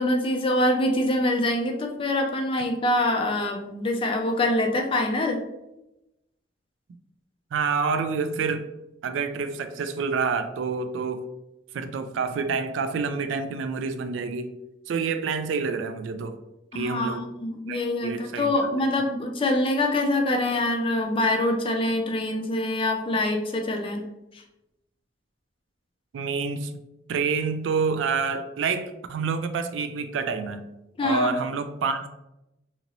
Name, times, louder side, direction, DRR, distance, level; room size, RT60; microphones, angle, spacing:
voice 1, 0.0-5.4 16.7-24.0 31.0-31.3, left 1 dB, 30° left, 3 dB, 0.4 m, -25 dB
voice 2, 7.5-8.7 9.0-11.2 11.7-14.5 14.9-16.4 16.7-17.3 17.7-18.5 26.1-26.7 27.1-30.7 31.0-32.1, right 5 dB, 80° right, 9 dB, 0.3 m, -28 dB
2.8 x 2.5 x 2.9 m, 0.92 s
head